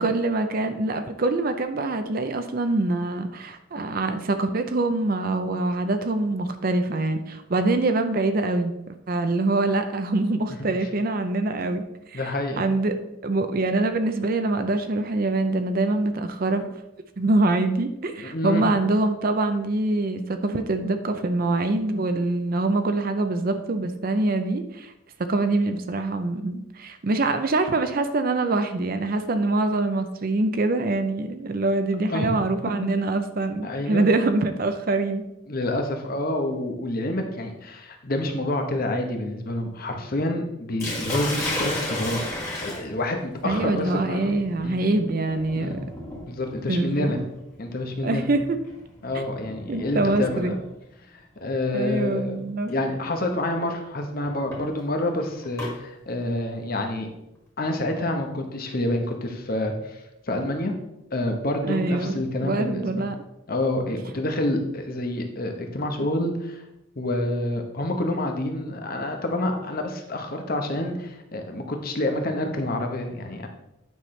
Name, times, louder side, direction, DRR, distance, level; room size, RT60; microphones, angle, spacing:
voice 1, 0.0-11.8 12.1-12.9 13.2-16.7 17.2-24.9 25.2-35.2 43.4-45.8 46.7-47.3 48.0-48.6 49.1-49.2 49.7-50.5 51.7-52.7 61.6-63.2, right 2 dB, 45° right, 8 dB, 0.5 m, -24 dB
voice 2, 12.1-12.6 18.2-18.6 32.1-32.3 33.6-34.1 35.5-42.2 42.6-44.3 44.6-44.8 45.6-45.8 46.3-47.2 47.6-48.3 49.0-50.6 51.4-52.4 52.7-57.1 57.6-60.7 61.1-63.1 63.5-66.6 67.0-73.5, left 1 dB, 45° left, 4 dB, 1.0 m, -28 dB
Sink (filling or washing), 40.8-50.7 51.8-52.2 52.7-52.8 54.2-55.7, left 1 dB, 15° left, 1.9 m, -34 dB
9.2 x 5.8 x 3.2 m, 0.87 s
head